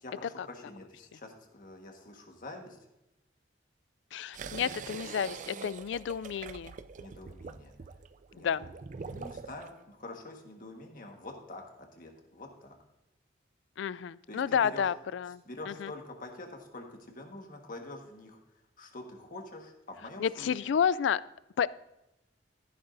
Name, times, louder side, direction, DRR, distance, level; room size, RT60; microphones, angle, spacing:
voice 1, 0.0-2.8 7.0-7.7 8.3-8.7 9.0-12.8 14.3-14.9 15.4-18.4 18.8-20.7, left 2 dB, 50° left, 3 dB, 1.5 m, -46 dB
voice 2, 4.1-6.7 8.4-8.6 13.8-15.4 15.7-15.9 20.2-21.2 21.6-21.7, left 7 dB, 75° left, 19 dB, 0.3 m, -30 dB
sound 1, 4.3-9.7, right 5 dB, 45° right, 0.4 m, -44 dB
14.0 x 11.0 x 2.6 m, 0.91 s
head